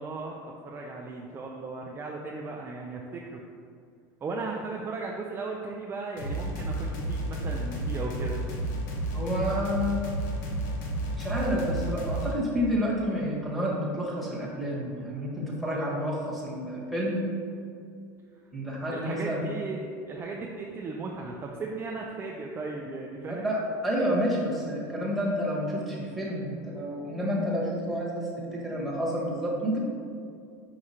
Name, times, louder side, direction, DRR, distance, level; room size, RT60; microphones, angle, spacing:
voice 1, 0.0-3.4 4.2-8.4 18.9-23.5, right 3 dB, 25° right, -1 dB, 0.5 m, -36 dB
sound 1, 6.2-12.4, right 1 dB, 80° left, 1.1 m, -31 dB
voice 2, 9.1-10.0 11.1-17.2 18.5-19.5 23.2-29.8, equal, ahead, -6 dB, 1.4 m, -29 dB
4.8 x 4.8 x 4.3 m, 2.4 s
supercardioid pair, 135°, 10 cm